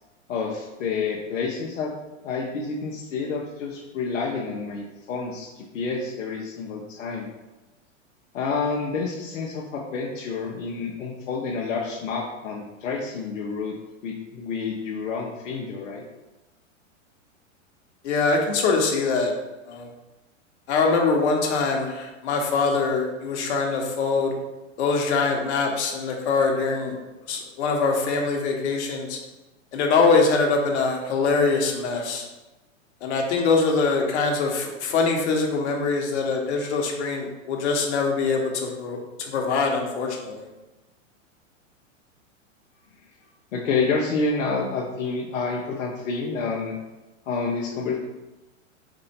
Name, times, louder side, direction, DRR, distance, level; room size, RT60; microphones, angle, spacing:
voice 1, 0.3-1.9 2.2-7.3 8.3-13.8 14.0-16.0 43.5-46.8 47.2-48.0, left 4 dB, 80° left, -2 dB, 0.8 m, -29 dB
voice 2, 18.0-19.3 19.7-19.9 20.7-24.3 24.8-27.0 27.3-29.2 29.7-32.3 33.0-40.5, left 4 dB, 60° left, 1 dB, 1.1 m, -23 dB
4.3 x 2.7 x 4.2 m, 1.1 s
hypercardioid pair, 115°, 38 cm